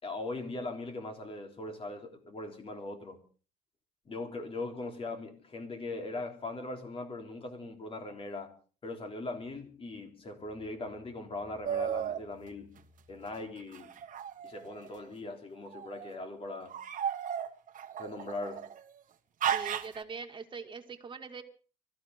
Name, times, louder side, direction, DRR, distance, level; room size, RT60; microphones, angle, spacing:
voice 1, 0.0-3.2 4.1-8.5 8.8-12.8 13.1-13.9 14.4-16.8 18.0-18.7, left 2 dB, 35° left, 3.5 m, -40 dB
sound 1, 11.7-12.2 13.7-14.9 15.7-16.1 16.7-18.8 19.4-20.0, right 9 dB, 50° right, 1.4 m, -34 dB
voice 2, 19.5-21.4, right 5 dB, 30° right, 2.2 m, -42 dB
24.5 x 14.0 x 3.7 m
cardioid pair, 110°, 17 cm